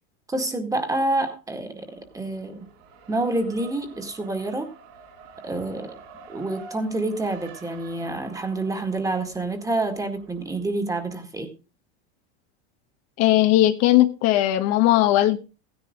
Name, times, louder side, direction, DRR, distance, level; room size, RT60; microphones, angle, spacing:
voice 1, 0.3-2.7 3.1-4.7 5.4-5.9 6.3-11.5, right 2 dB, 10° right, 6 dB, 2.0 m, -28 dB
Race car auto racing, 1.8-10.9, right 5 dB, 65° right, 6.3 m, -48 dB
voice 2, 13.2-15.4, left 14 dB, 50° left, 8 dB, 1.3 m, -18 dB
15.0 x 10.5 x 3.7 m, 0.31 s
supercardioid pair, 145°, 33 cm